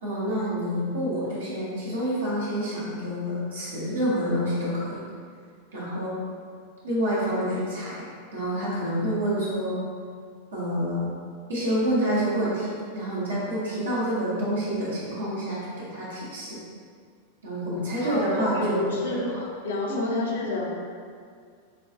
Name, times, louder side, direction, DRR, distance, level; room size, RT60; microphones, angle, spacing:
voice 1, 0.0-5.0 5.7-6.1 6.8-8.0 8.3-9.8 10.5-11.1 11.5-16.6 17.4-19.3 19.9-20.0, equal, 70° right, -8 dB, 1.0 m, -28 dB
voice 2, 18.0-19.3 19.6-20.7, left 2 dB, 60° left, -2 dB, 0.7 m, -29 dB
5.1 x 2.3 x 2.7 m, 2.1 s
figure-of-eight pair, 90°, 0 cm